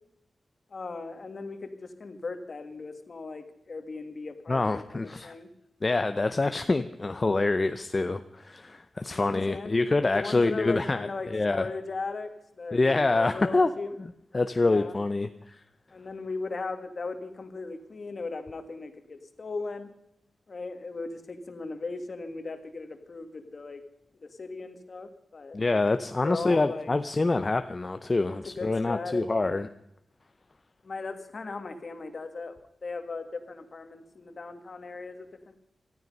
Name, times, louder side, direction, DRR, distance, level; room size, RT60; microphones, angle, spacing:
voice 1, 0.7-5.5 9.1-13.9 14.6-14.9 15.9-19.9 20.5-23.8 24.2-25.6 26.2-26.9 28.3-29.6 30.8-35.6, left 3 dB, 45° left, 8 dB, 1.8 m, -38 dB
voice 2, 4.5-5.3 5.8-11.7 12.7-13.7 14.3-15.6 25.5-29.7, left 3 dB, 30° left, 9 dB, 0.6 m, -26 dB
19.0 x 13.5 x 5.4 m, 0.79 s
wide cardioid pair, 140°, 0 cm